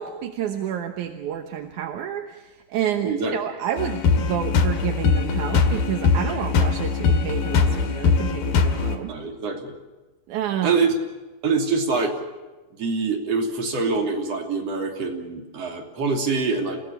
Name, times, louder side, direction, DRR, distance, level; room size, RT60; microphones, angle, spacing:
voice 1, 0.0-9.2 10.3-10.8, right 10 dB, 65° right, 5 dB, 2.2 m, -29 dB
voice 2, 3.0-3.3 9.1-9.8 10.6-10.9 11.4-12.2 12.8-16.8, right 4 dB, 45° right, 2 dB, 3.7 m, -24 dB
sound 1, 3.8-9.0, left 5 dB, 70° left, 3.6 m, -21 dB
29.5 x 17.5 x 7.1 m, 1.2 s
omnidirectional pair, 4.5 m